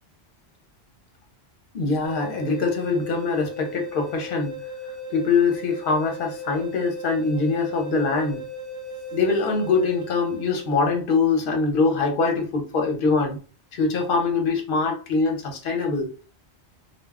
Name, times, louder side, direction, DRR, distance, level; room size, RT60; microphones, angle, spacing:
voice 1, 1.7-4.6 5.1-8.4 9.1-13.4 13.7-16.1, left 4 dB, 55° left, 3 dB, 0.8 m, -23 dB
sound 1, 2.0-11.0, left 1 dB, 75° right, 0.9 m, -37 dB
2.3 x 2.2 x 3.3 m, 0.36 s
omnidirectional pair, 1.1 m